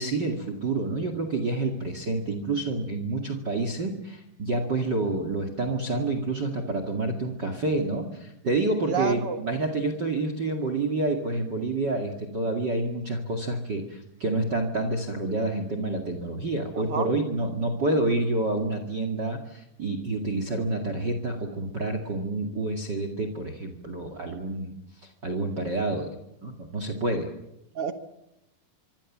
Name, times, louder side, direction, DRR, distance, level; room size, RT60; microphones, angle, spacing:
voice 1, 0.0-24.7 25.0-26.1 26.4-27.3, right 2 dB, 35° right, 7 dB, 2.5 m, -28 dB
voice 2, 8.9-9.4 16.8-17.1 27.8-27.9, right 5 dB, 50° right, 9 dB, 2.0 m, -28 dB
26.0 x 24.5 x 7.4 m, 0.88 s
omnidirectional pair, 3.9 m